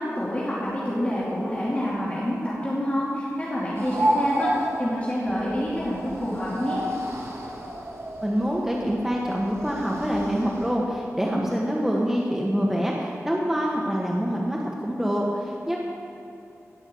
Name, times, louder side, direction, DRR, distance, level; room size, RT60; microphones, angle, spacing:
voice 1, 0.0-6.8, equal, 25° left, -8 dB, 2.8 m, -27 dB
sound 1, 3.7-10.7, right 1 dB, 55° right, 2.8 m, -30 dB
voice 2, 8.2-15.8, equal, 5° right, -3 dB, 1.4 m, -25 dB
17.5 x 6.3 x 7.8 m, 2.8 s
wide cardioid pair, 75°, 5 cm